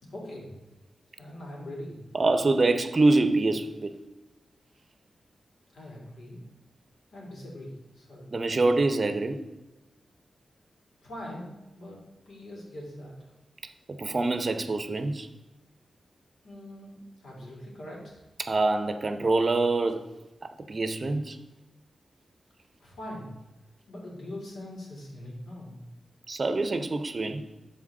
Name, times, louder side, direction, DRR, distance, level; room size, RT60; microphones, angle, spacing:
voice 1, 0.0-0.6 1.2-2.0 5.7-6.4 7.1-8.3 11.0-13.1 16.4-18.2 22.8-23.3 23.9-25.8, left 1 dB, 80° left, 3.0 m, -42 dB
voice 2, 2.1-3.9 8.3-9.4 13.9-15.3 18.4-20.0 20.4-21.4 26.3-27.5, right 2 dB, 45° right, 0.6 m, -25 dB
12.5 x 4.3 x 3.7 m
cardioid pair, 75°, 0 cm